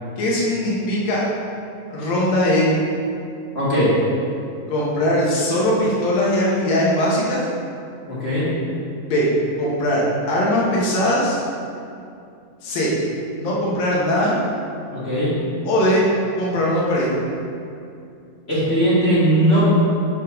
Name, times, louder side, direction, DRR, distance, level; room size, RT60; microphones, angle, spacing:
voice 1, 0.2-1.2 1.9-2.6 4.7-7.4 9.1-9.3 9.6-11.4 12.6-12.9 13.3-14.3 15.7-16.1 16.4-17.2, left 1 dB, 80° left, -6 dB, 3.2 m, -20 dB
voice 2, 3.5-3.9 8.1-8.5 14.9-15.3 18.5-19.6, right 1 dB, 30° left, -10 dB, 1.2 m, -19 dB
8.1 x 4.9 x 5.1 m, 2.5 s
omnidirectional pair, 4.0 m